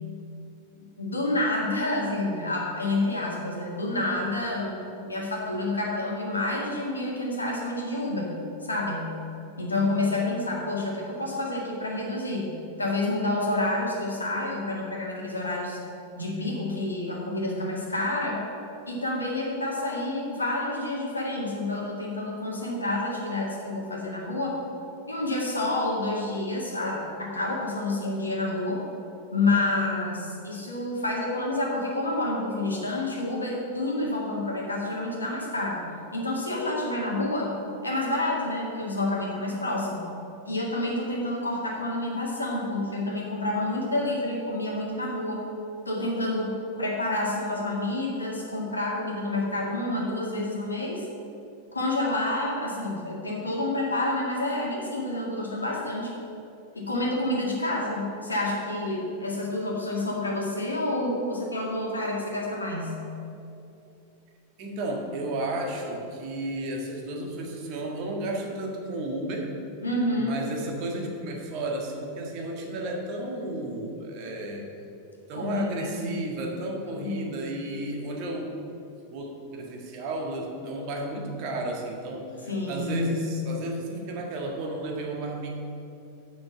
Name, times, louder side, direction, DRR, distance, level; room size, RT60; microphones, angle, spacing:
voice 1, 0.8-8.3 8.6-9.0 9.6-12.5 12.8-15.8 16.2-18.4 18.9-24.6 25.1-28.8 29.3-35.8 36.1-37.5 37.8-40.1 40.5-45.4 45.9-51.0 51.7-56.1 56.7-62.9 69.8-70.4 75.3-76.2 77.0-77.3 82.5-83.3, left 2 dB, 80° left, -2 dB, 1.9 m, -28 dB
voice 2, 64.6-69.6 70.2-74.7 75.3-78.6 79.1-85.5, right 1 dB, 45° right, 1 dB, 1.6 m, -33 dB
7.6 x 6.1 x 7.8 m, 2.7 s
figure-of-eight pair, 90°, 0 cm